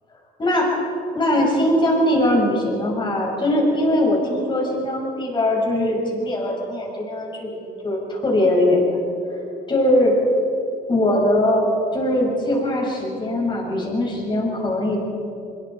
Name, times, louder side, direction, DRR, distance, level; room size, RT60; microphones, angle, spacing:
voice 1, 0.4-0.8 1.1-8.8 9.7-10.2 10.9-15.0, left 1 dB, 30° left, -1 dB, 6.9 m, -21 dB
24.5 x 22.0 x 4.9 m, 2.8 s
cardioid pair, 110°, 17 cm